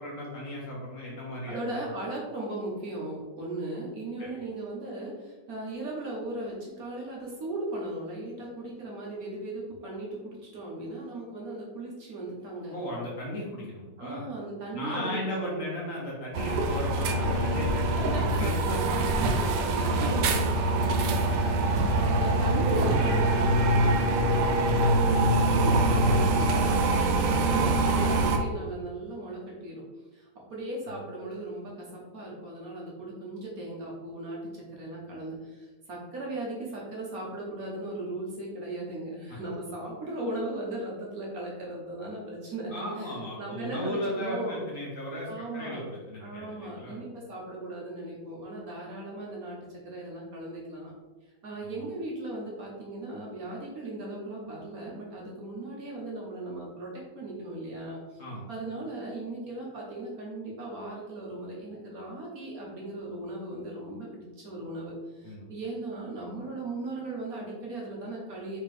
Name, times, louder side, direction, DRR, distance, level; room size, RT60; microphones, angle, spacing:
voice 1, 0.0-1.7 4.2-4.4 12.7-14.2 14.7-19.0 21.9-22.0 26.1-26.3 30.9-31.0 39.3-39.4 42.7-47.0 51.6-51.8 58.2-58.5 65.2-65.5, equal, 50° left, -4 dB, 1.3 m, -36 dB
voice 2, 1.5-12.8 14.0-15.7 18.1-18.7 19.0-29.8 30.1-44.7 45.3-45.8 46.2-50.9 51.4-58.2 58.5-68.6, right 2 dB, 55° right, -3 dB, 1.3 m, -37 dB
sound 1, 16.3-28.4, right 2 dB, 75° right, 1.1 m, -24 dB
4.4 x 3.7 x 3.3 m, 1.2 s
omnidirectional pair, 2.0 m